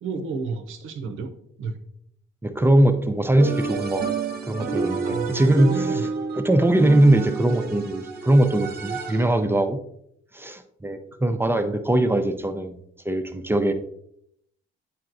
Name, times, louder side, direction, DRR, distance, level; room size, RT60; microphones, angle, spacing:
voice 1, 0.0-1.3 1.6-1.8 5.1-6.0 11.1-11.2, right 4 dB, 90° right, 8 dB, 0.7 m, -31 dB
voice 2, 2.4-4.0 4.4-6.1 6.4-9.8 10.3-13.7, right 1 dB, 10° right, 7 dB, 0.5 m, -21 dB
sound 1, 3.4-9.5, right 4 dB, 50° right, 0.7 m, -29 dB
8.5 x 4.6 x 2.5 m, 0.72 s
cardioid pair, 90°, 20 cm